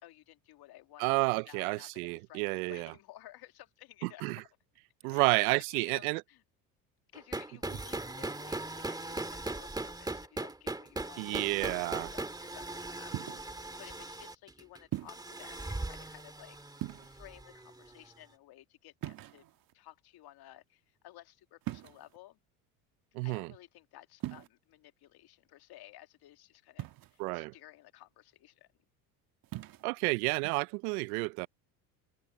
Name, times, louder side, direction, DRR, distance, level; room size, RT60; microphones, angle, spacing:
voice 1, 0.0-1.2 1.5-4.4 5.0-6.4 7.1-19.5 19.7-22.4 23.2-28.7, left 15 dB, 55° left, 2.1 m, -55 dB
voice 2, 1.0-2.9 4.0-4.4 5.0-6.2 11.2-12.1 23.1-23.5 27.2-27.5 29.8-31.5, right 27 dB, 80° right, 0.7 m, -30 dB
sound 1, 7.1-18.0, right 2 dB, 10° right, 2.0 m, -39 dB
Heavy Footsteps on Staircase Landing Wearing Brogues, 13.1-13.6 14.9-15.3 16.7-17.4 19.0-19.7 21.6-22.2 24.2-24.5 26.8-27.3 29.4-29.8, right 16 dB, 50° right, 1.5 m, -40 dB
open air
hypercardioid pair, 80°, 44 cm